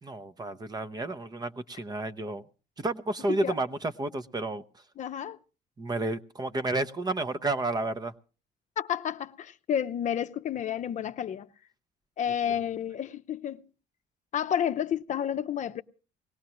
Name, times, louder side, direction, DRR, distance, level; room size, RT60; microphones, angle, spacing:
voice 1, 0.0-2.4 2.8-4.8 5.8-8.1, right 2 dB, 25° right, 0.7 m, -31 dB
voice 2, 5.0-5.4 8.8-11.5 12.2-13.6 14.3-15.8, left 9 dB, 45° left, 0.6 m, -30 dB
20.5 x 17.5 x 3.0 m
cardioid pair, 110°, 17 cm